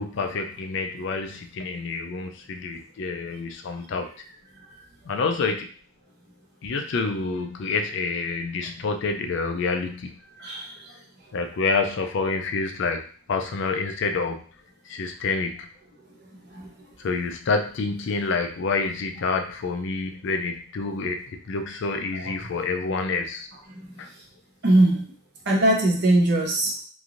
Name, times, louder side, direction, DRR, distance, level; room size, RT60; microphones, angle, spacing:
voice 1, 0.0-4.1 5.0-5.7 6.6-10.1 11.3-13.0 13.3-14.4 14.9-15.7 17.0-23.5 24.0-24.1, left 4 dB, 55° left, 5 dB, 0.4 m, -28 dB
voice 2, 10.4-10.9 16.5-16.7 22.2-22.3 23.7-24.0 24.6-25.0 25.5-26.7, right 1 dB, 50° right, -1 dB, 0.8 m, -21 dB
3.1 x 2.5 x 2.5 m, 0.43 s
head